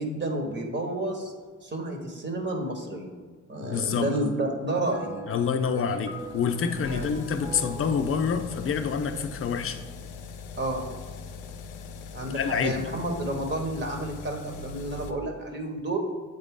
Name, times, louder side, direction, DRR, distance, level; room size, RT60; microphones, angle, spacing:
voice 1, 0.0-1.3 1.6-3.1 3.5-5.2 5.7-6.0 6.8-7.1 10.6-10.8 12.1-16.0, right 1 dB, 35° right, 2 dB, 1.3 m, -30 dB
voice 2, 3.6-4.1 5.3-9.8 12.3-12.9, left 6 dB, 45° left, 7 dB, 0.6 m, -27 dB
sound 1, 4.8-15.1, left 4 dB, 90° left, 0.6 m, -41 dB
sound 2, 4.9-10.4, right 2 dB, 15° right, 0.7 m, -45 dB
8.1 x 4.0 x 3.7 m, 1.5 s
cardioid pair, 90°, 30 cm